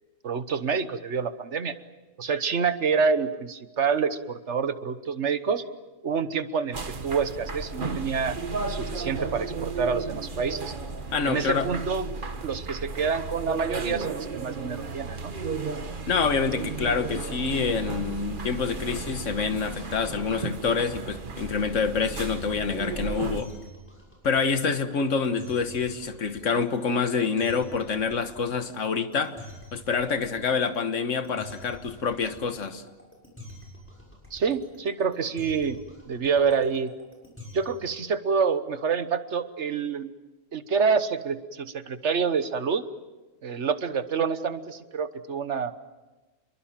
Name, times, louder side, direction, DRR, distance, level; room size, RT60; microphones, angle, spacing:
voice 1, 0.2-1.7 2.2-5.6 6.0-8.4 8.7-10.7 11.2-12.1 12.4-15.3 34.3-35.8 36.1-36.9 37.5-40.1 40.5-42.9 43.4-45.7, right 5 dB, 60° right, 1.4 m, -27 dB
sound 1, 6.7-23.4, right 4 dB, 40° right, 1.4 m, -34 dB
voice 2, 11.1-11.7 16.1-23.5 24.2-29.4 29.7-32.8, left 5 dB, 70° left, 1.8 m, -27 dB
sound 2, 22.4-37.9, left 1 dB, 10° left, 6.8 m, -47 dB
29.5 x 22.5 x 7.4 m
omnidirectional pair, 1.3 m